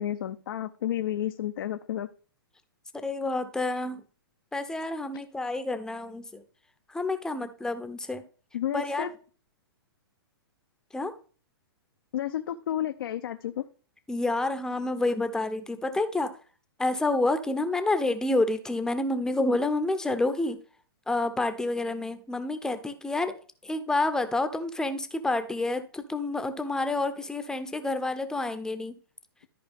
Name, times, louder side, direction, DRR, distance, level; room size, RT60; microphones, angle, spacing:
voice 1, 0.0-2.1 8.5-9.1 12.1-13.6, left 11 dB, 65° left, 7 dB, 0.6 m, -31 dB
voice 2, 2.9-4.0 4.5-6.4 6.9-8.2 8.7-9.1 10.9-11.1 14.1-16.3 16.8-20.6 21.1-23.3 23.6-28.9, left 2 dB, 5° left, 9 dB, 0.7 m, -28 dB
13.0 x 4.7 x 3.5 m, 0.40 s
hypercardioid pair, 130°, 13 cm